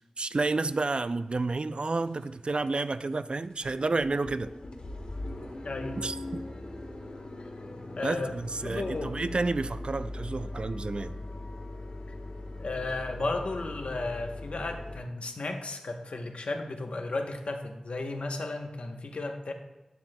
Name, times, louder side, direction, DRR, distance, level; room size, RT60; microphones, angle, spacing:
voice 1, 0.2-4.5 6.0-6.5 8.0-11.2, right 3 dB, 55° right, 0.4 m, -30 dB
sound 1, 1.3-1.4 1.9-2.3 2.6-2.7 3.1-3.2 3.4-15.0, left 2 dB, 65° left, 1.3 m, -40 dB
voice 2, 5.6-6.0 8.0-8.3 8.6-9.2 12.6-19.5, left 2 dB, 80° left, 0.9 m, -34 dB
11.0 x 9.4 x 2.2 m
wide cardioid pair, 50°, 2 cm